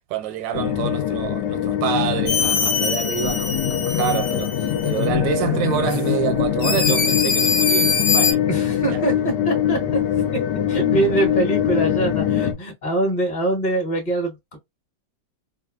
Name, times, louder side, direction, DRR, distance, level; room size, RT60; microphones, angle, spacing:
voice 1, 0.1-8.5 8.9-9.0, right 11 dB, 90° right, 1.3 m, -27 dB
sound 1, 0.5-12.5, left 10 dB, 80° left, 1.2 m, -23 dB
sound 2, 2.3-5.1 5.9-6.0 6.6-8.3, left 5 dB, 50° left, 0.8 m, -23 dB
voice 2, 8.5-10.0 10.3-10.4 10.7-14.6, right 2 dB, 30° left, 1.0 m, -24 dB
2.9 x 2.4 x 2.3 m
omnidirectional pair, 1.9 m